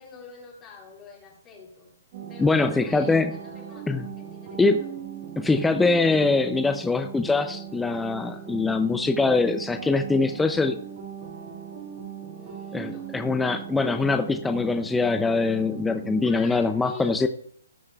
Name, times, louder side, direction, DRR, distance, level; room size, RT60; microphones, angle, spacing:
voice 1, 0.0-1.9 2.3-4.9 12.3-13.6 16.2-17.3, left 4 dB, 20° left, -6 dB, 3.5 m, -46 dB
sound 1, 2.1-16.3, right 8 dB, 45° right, 2.4 m, -39 dB
voice 2, 2.4-3.3 3.9-4.0 4.6-4.8 5.4-10.8 12.7-17.3, left 3 dB, 5° left, 7 dB, 0.5 m, -23 dB
19.0 x 6.4 x 2.4 m, 0.63 s
hypercardioid pair, 150°, 0 cm